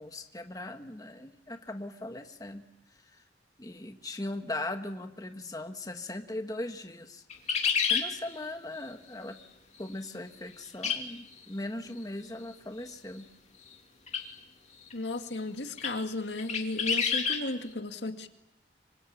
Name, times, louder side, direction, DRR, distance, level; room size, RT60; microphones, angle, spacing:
voice 1, 0.0-2.6 3.6-7.2 7.9-9.4 9.8-13.2, left 1 dB, 20° left, 6 dB, 1.4 m, -39 dB
sound 1, 7.3-8.1 10.8-11.0 11.3-11.4 14.1-14.3 14.9-15.0 15.8-15.9 16.4-17.4, left 6 dB, 40° left, 2.8 m, -28 dB
voice 2, 14.9-18.3, left 2 dB, 90° left, 6 dB, 2.1 m, -35 dB
25.5 x 25.5 x 8.7 m, 0.87 s
head